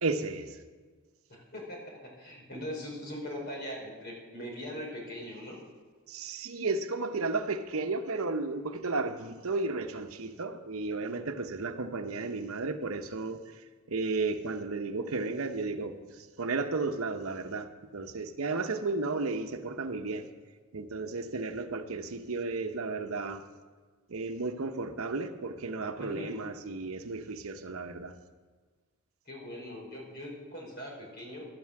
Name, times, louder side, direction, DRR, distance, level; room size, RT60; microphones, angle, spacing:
voice 1, 0.0-0.6 6.1-20.3 20.7-23.4 24.1-28.1, right 3 dB, 70° right, 8 dB, 0.9 m, -33 dB
voice 2, 1.3-5.6 26.0-26.3 29.2-31.4, left 1 dB, 50° left, -1 dB, 4.7 m, -41 dB
12.0 x 9.4 x 7.6 m, 1.4 s
head